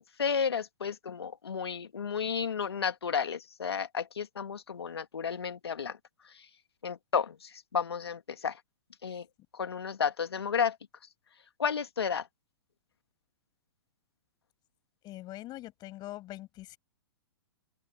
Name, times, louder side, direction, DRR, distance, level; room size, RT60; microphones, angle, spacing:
voice 1, 0.0-6.0 6.8-8.6 9.0-9.2 9.5-10.8 11.6-12.3, left 6 dB, 85° left, 2.5 m, -32 dB
voice 2, 15.0-16.8, left 16 dB, 30° left, 6.1 m, -43 dB
open air
hypercardioid pair, 120°, 13 cm